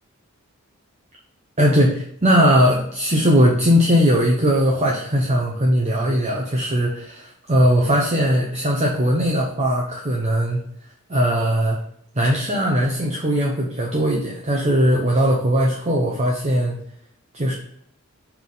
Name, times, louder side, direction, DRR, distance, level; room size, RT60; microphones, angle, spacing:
voice 1, 1.6-10.6 11.1-11.8 12.2-16.8 17.3-17.5, equal, 30° right, -2 dB, 0.9 m, -19 dB
7.1 x 3.7 x 4.0 m, 0.66 s
head